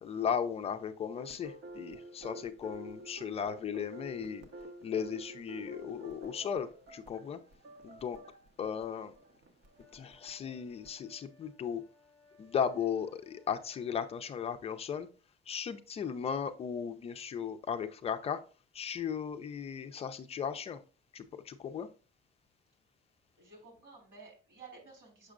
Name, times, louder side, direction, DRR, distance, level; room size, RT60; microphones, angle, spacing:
voice 1, 0.0-4.4 4.8-7.4 7.8-8.2 8.6-9.2 9.9-11.8 12.4-15.1 15.5-18.4 18.7-20.8 21.1-21.9, left 7 dB, 30° left, 9 dB, 0.4 m, -36 dB
sound 1, 1.1-11.0, right 1 dB, 65° right, 1.3 m, -49 dB
sound 2, 9.7-14.2, left 4 dB, 10° right, 3.6 m, -64 dB
voice 2, 23.4-25.3, right 4 dB, 85° right, 0 dB, 3.6 m, -53 dB
6.6 x 6.1 x 2.4 m, 0.34 s
cardioid pair, 180°, 19 cm